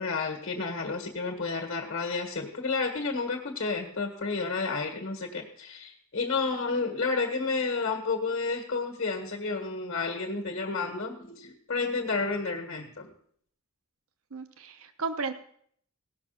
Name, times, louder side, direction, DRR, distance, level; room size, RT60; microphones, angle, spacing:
voice 1, 0.0-13.1, left 4 dB, 60° left, 4 dB, 1.6 m, -31 dB
voice 2, 14.3-15.3, right 4 dB, 75° right, 9 dB, 0.9 m, -34 dB
17.0 x 6.0 x 5.8 m, 0.63 s
head